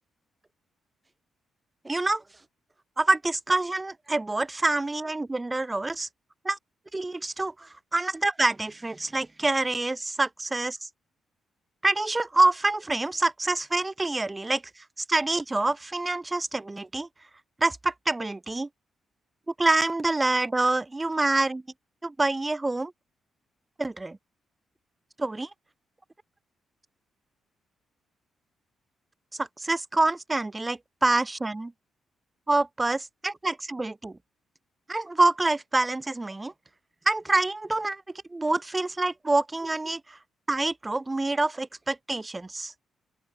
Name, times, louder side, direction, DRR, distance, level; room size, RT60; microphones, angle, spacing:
voice 1, 1.8-2.2 3.0-6.1 6.4-6.6 6.9-10.8 11.8-14.6 15.1-17.1 17.6-18.7 19.6-21.6 22.0-22.9 23.8-24.2 25.2-25.5 29.4-31.7 32.5-34.1 34.9-36.5 37.1-38.0 38.3-40.2 40.5-42.7, right 2 dB, 15° right, 1.1 m, -26 dB
open air
cardioid pair, 160°, 0 cm